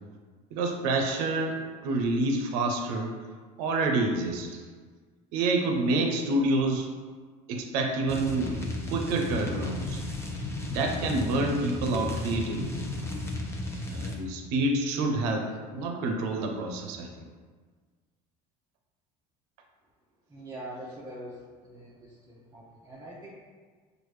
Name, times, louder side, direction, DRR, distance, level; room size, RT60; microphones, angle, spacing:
voice 1, 0.5-3.2 3.6-4.6 5.3-6.9 7.5-10.0 10.7-12.8 13.9-17.1, right 2 dB, 75° right, 3 dB, 0.7 m, -28 dB
sound 1, 8.1-14.2, left 2 dB, 15° left, 0.8 m, -34 dB
voice 2, 20.3-23.4, right 1 dB, 20° right, -6 dB, 0.9 m, -43 dB
6.2 x 2.6 x 3.1 m, 1.5 s
hypercardioid pair, 75°, 20 cm